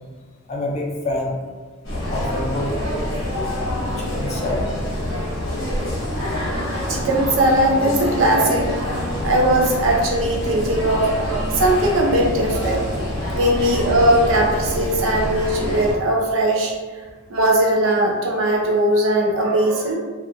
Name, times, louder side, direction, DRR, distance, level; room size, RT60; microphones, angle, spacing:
voice 1, 0.5-1.4 1.9-2.7 4.0-4.7 13.4-13.5, left 2 dB, 35° left, -2 dB, 0.4 m, -27 dB
sound 1, 1.8-15.9, left 1 dB, 65° left, 0.9 m, -26 dB
voice 2, 6.9-8.7 9.2-12.9 13.3-16.7 17.3-20.0, right 1 dB, 70° right, -1 dB, 0.5 m, -19 dB
2.5 x 2.3 x 2.4 m, 1.4 s
head